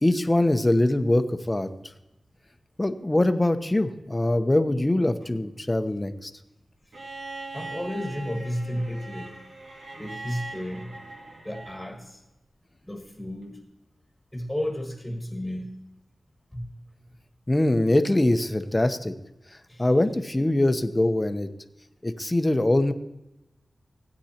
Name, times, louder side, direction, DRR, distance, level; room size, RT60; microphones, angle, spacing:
voice 1, 0.0-1.7 2.8-6.3 17.5-19.1 19.8-21.5 22.0-22.9, left 1 dB, 20° left, 9 dB, 0.8 m, -23 dB
Bowed string instrument, 6.9-12.0 13.4-13.5, right 2 dB, 80° right, 2.2 m, -40 dB
voice 2, 7.5-9.4 10.0-11.0 11.4-12.2 12.9-13.6 14.3-15.8 16.5-16.7 19.7-19.9, equal, 5° left, 2 dB, 1.6 m, -33 dB
16.5 x 9.1 x 2.9 m, 0.92 s
wide cardioid pair, 75°, 0 cm